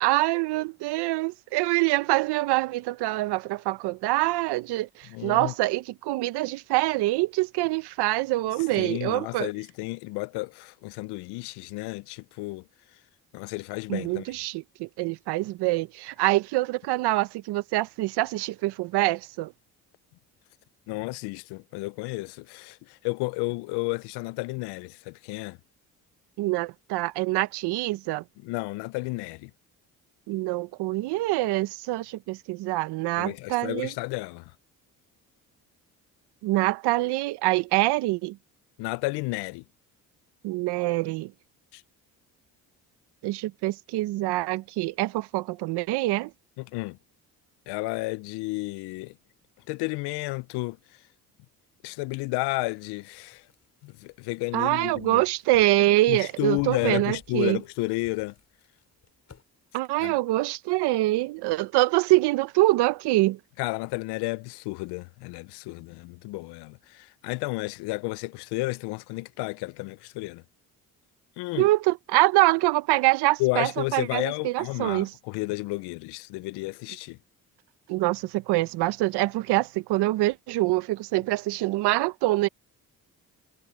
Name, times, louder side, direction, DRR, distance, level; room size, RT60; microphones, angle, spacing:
voice 1, 0.0-9.5 13.9-19.5 26.4-28.2 30.3-33.9 36.4-38.4 40.4-41.3 43.2-46.3 54.5-57.6 59.7-63.4 71.6-75.1 77.9-82.5, right 18 dB, 85° right, 0.9 m, -25 dB
voice 2, 5.1-5.5 8.8-12.6 13.3-14.3 20.9-25.6 28.4-29.5 33.2-34.5 38.8-39.6 41.7-41.8 46.6-47.0 47.7-49.1 49.7-50.8 51.8-53.4 53.8-55.2 56.1-58.3 60.0-60.2 63.6-70.4 71.4-71.7 73.4-77.2, left 23 dB, 85° left, 0.6 m, -32 dB
sound 1, 52.5-59.4, left 6 dB, 40° left, 7.1 m, -58 dB
supercardioid pair, 75°, 39 cm